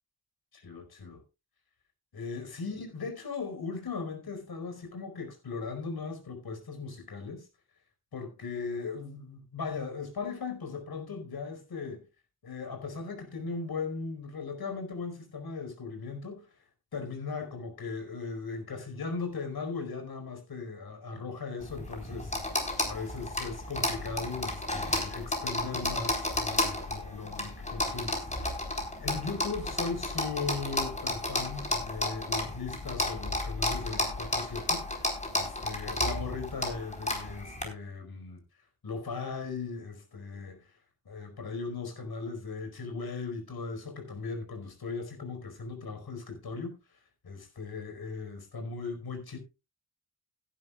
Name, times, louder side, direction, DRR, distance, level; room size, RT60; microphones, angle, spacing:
voice 1, 0.5-1.2 2.1-7.5 8.1-12.0 12.4-16.5 16.9-22.3 22.9-28.3 29.0-38.4 38.8-40.7 41.0-46.8 47.2-49.4, left 4 dB, 70° left, 5.0 m, -38 dB
sound 1, 21.6-37.6, left 1 dB, 20° left, 4.4 m, -32 dB
17.0 x 11.0 x 2.4 m
wide cardioid pair, 95°, 38 cm